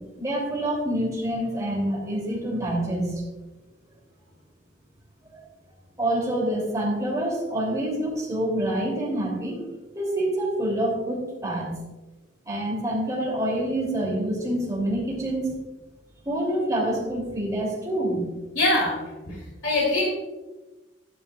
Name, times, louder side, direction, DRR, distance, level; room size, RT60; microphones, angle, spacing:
voice 1, 0.2-3.2 5.2-5.4 6.0-9.6 9.9-11.7 12.4-15.6 16.2-18.3, right 1 dB, 15° right, -3 dB, 2.9 m, -27 dB
voice 2, 18.5-19.0 19.3-20.1, left 2 dB, 70° left, -4 dB, 2.5 m, -23 dB
12.5 x 11.0 x 2.4 m, 1.1 s
head